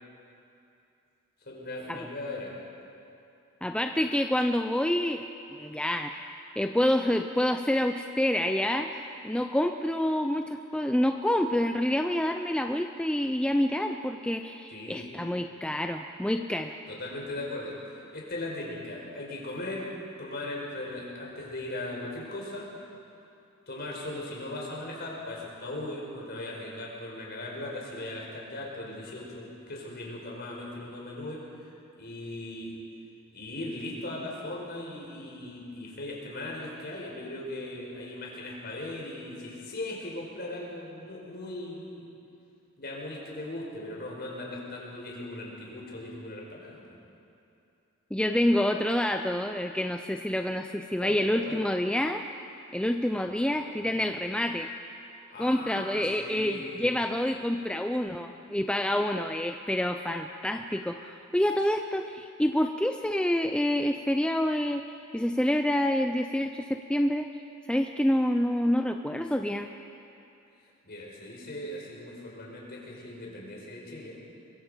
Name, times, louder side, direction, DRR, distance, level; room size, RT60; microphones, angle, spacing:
voice 1, 1.5-2.5 14.7-15.1 16.9-19.9 20.2-22.7 23.7-32.8 33.3-42.0 42.8-46.8 51.0-51.6 55.3-56.9 70.8-74.2, left 1 dB, 50° left, -3 dB, 5.2 m, -38 dB
voice 2, 3.6-5.3 5.6-16.8 48.1-52.3 52.7-54.7 55.4-64.9 65.1-67.3 67.7-69.7, left 1 dB, 5° left, 5 dB, 0.5 m, -27 dB
23.0 x 22.5 x 5.2 m, 2.7 s
head